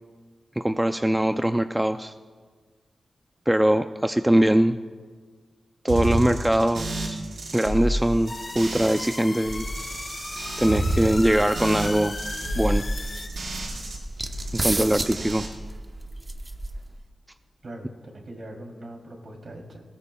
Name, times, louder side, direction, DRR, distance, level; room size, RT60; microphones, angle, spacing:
voice 1, 0.6-2.1 3.5-4.8 5.8-7.2 7.5-9.6 10.6-12.2 12.5-12.8 14.5-15.4, right 1 dB, 10° right, 8 dB, 0.4 m, -22 dB
sound 1, 5.9-9.2 9.5-14.0 14.3-15.5, right 1 dB, 80° right, 4.2 m, -30 dB
sound 2, 8.3-13.3, left 3 dB, 50° left, 1.7 m, -37 dB
sound 3, 10.4-17.0, right 1 dB, 25° right, 0.9 m, -34 dB
voice 2, 17.6-19.8, right 1 dB, 55° right, 1 dB, 3.0 m, -41 dB
19.0 x 18.5 x 2.3 m, 1.5 s
wide cardioid pair, 90°, 0 cm